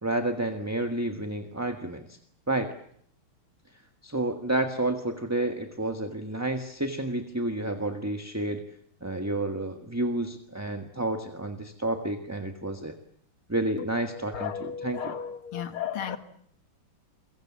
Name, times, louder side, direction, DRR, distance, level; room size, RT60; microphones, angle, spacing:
voice 1, 0.0-2.2 2.5-2.7 4.0-8.6 9.0-13.0 13.5-15.1, right 2 dB, 10° right, 1.3 m, -30 dB
voice 2, 14.1-16.2, left 8 dB, 85° left, 2.6 m, -34 dB
29.5 x 22.5 x 7.5 m
omnidirectional pair, 2.3 m